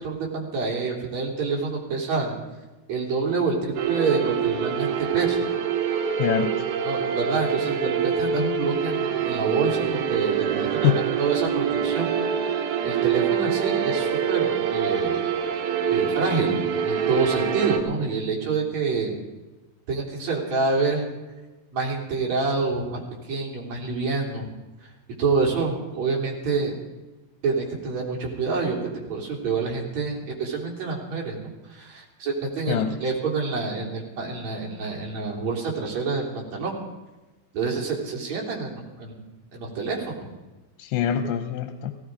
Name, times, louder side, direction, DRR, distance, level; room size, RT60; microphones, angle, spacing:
voice 1, 0.0-2.3 2.9-3.6 3.9-5.5 6.8-12.1 12.4-12.6 12.8-15.2 15.9-19.1 19.9-21.1 21.7-23.0 23.3-24.5 25.2-26.8 27.4-28.8 29.1-31.4 31.7-36.8 37.5-39.1 39.5-40.3, right 4 dB, 45° right, -2 dB, 4.2 m, -27 dB
sound 1, 3.8-17.8, right 7 dB, 70° right, 3.2 m, -25 dB
voice 2, 6.2-6.6 10.8-11.0 32.7-33.0 40.8-41.9, left 10 dB, 85° left, 8 dB, 3.0 m, -24 dB
17.0 x 17.0 x 5.0 m, 1.1 s
omnidirectional pair, 4.8 m